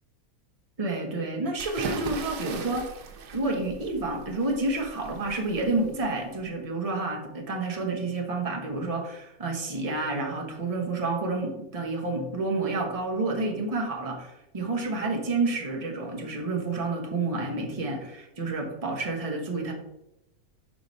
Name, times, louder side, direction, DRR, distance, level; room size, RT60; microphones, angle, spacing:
voice 1, 0.8-2.9 3.3-19.7, right 3 dB, 25° right, 1 dB, 1.0 m, -29 dB
sound 1, 1.6-6.4, right 4 dB, 85° right, 1.4 m, -39 dB
4.9 x 4.8 x 5.3 m, 0.89 s
omnidirectional pair, 1.7 m